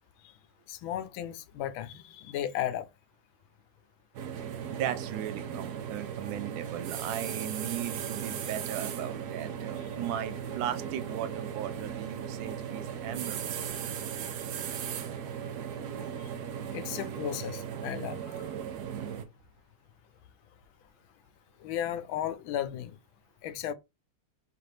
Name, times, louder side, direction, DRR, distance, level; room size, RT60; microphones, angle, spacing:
voice 1, 0.7-2.9 16.0-16.3 16.7-18.4 21.6-22.9 23.4-23.7, left 11 dB, 85° left, 1.4 m, -35 dB
sound 1, 4.1-19.2, right 8 dB, 65° right, 1.0 m, -37 dB
voice 2, 4.7-13.8, right 10 dB, 85° right, 1.4 m, -37 dB
4.4 x 2.6 x 3.2 m
omnidirectional pair, 2.1 m